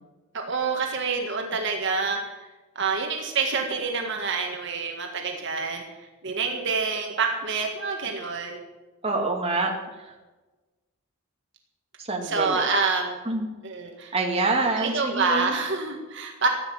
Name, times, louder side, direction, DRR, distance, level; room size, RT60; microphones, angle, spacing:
voice 1, 0.3-2.2 2.8-5.8 6.2-8.6 12.2-13.2 13.6-14.1 14.8-16.5, right 4 dB, 55° right, 2 dB, 1.8 m, -27 dB
voice 2, 9.0-9.7 12.1-12.6 13.3-13.5 14.1-15.5, right 3 dB, 25° right, 0 dB, 2.4 m, -26 dB
15.0 x 10.0 x 7.6 m, 1.2 s
head